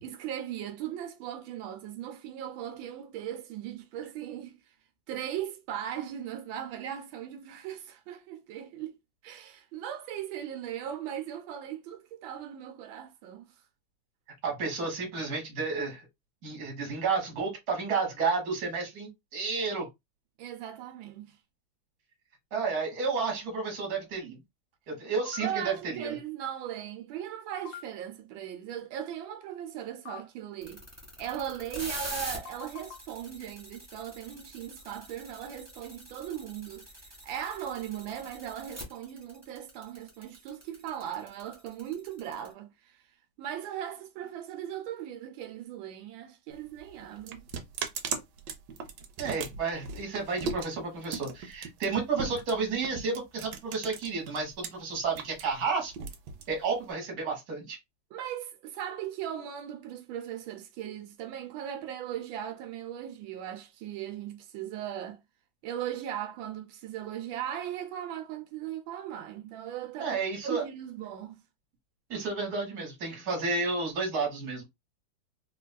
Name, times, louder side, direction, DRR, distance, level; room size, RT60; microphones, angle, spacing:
voice 1, 0.0-4.6 5.1-9.0 9.2-13.5 20.4-21.4 25.4-30.8 31.2-36.9 37.2-43.0 43.4-47.5 58.1-65.2 65.6-71.4, right 10 dB, 90° right, 1.4 m, -38 dB
voice 2, 14.4-16.0 16.4-19.9 22.5-24.4 24.9-26.2 49.2-55.9 56.5-57.8 70.0-70.6 72.1-74.6, right 4 dB, 55° right, 1.7 m, -31 dB
sound 1, 25.3-25.5 27.7-27.8 30.1-30.2 32.5-33.0, left 10 dB, 75° left, 0.9 m, -43 dB
sound 2, 30.6-42.5, right 1 dB, 10° right, 0.8 m, -43 dB
sound 3, 46.5-54.7 55.0-56.9, right 5 dB, 75° right, 1.2 m, -38 dB
3.8 x 2.4 x 2.2 m
omnidirectional pair, 2.1 m